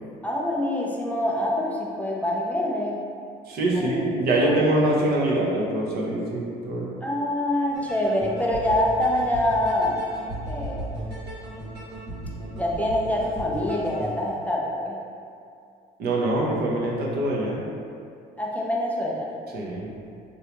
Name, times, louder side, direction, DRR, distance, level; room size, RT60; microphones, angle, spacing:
voice 1, 0.2-3.0 3.7-4.1 4.4-4.6 7.0-10.9 12.6-15.0 18.4-19.3, left 1 dB, 10° left, -3 dB, 0.4 m, -25 dB
voice 2, 3.5-6.9 16.0-17.6 19.5-19.9, right 1 dB, 65° right, -3 dB, 0.7 m, -24 dB
sound 1, 7.7-14.1, right 1 dB, 90° right, 1.2 m, -36 dB
3.2 x 2.6 x 2.8 m, 2.4 s
cardioid pair, 110°, 17 cm